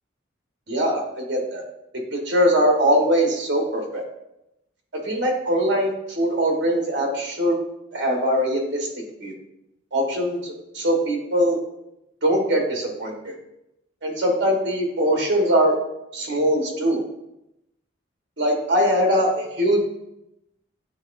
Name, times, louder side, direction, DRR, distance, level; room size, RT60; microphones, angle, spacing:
voice 1, 0.7-1.6 2.1-4.0 5.0-7.6 7.9-8.9 9.2-9.3 9.9-11.6 12.2-13.3 14.0-15.7 16.1-17.0 18.4-19.8, equal, 65° right, 1 dB, 1.4 m, -21 dB
9.6 x 4.0 x 2.6 m, 0.87 s
head